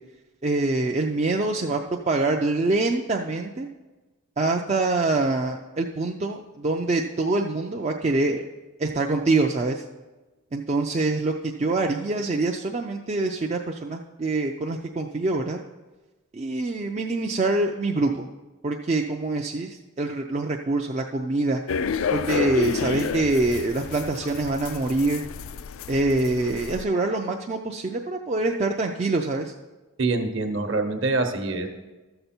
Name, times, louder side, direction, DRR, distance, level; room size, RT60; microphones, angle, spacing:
voice 1, 0.4-3.7 4.4-8.4 8.8-9.8 10.5-15.6 16.3-18.3 18.6-21.6 22.1-25.2 25.9-29.5, right 2 dB, 30° right, 1 dB, 0.4 m, -25 dB
sound 1, 21.7-26.8, left 6 dB, 65° left, 0.4 m, -30 dB
voice 2, 30.0-31.7, right 3 dB, 55° right, 5 dB, 1.0 m, -25 dB
13.0 x 6.7 x 4.3 m, 1.2 s
head